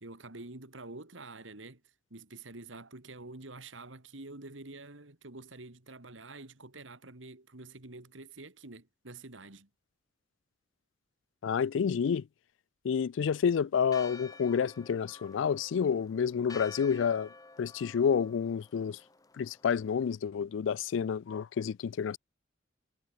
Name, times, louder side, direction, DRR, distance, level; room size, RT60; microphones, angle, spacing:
voice 1, 0.0-1.8 2.1-9.7, right 2 dB, 80° right, 2.5 m, -47 dB
voice 2, 11.4-12.3 12.8-17.3 17.6-19.0 19.4-22.2, left 7 dB, 75° left, 0.4 m, -29 dB
Church bell, 13.9-20.2, left 3 dB, 20° left, 1.2 m, -51 dB
head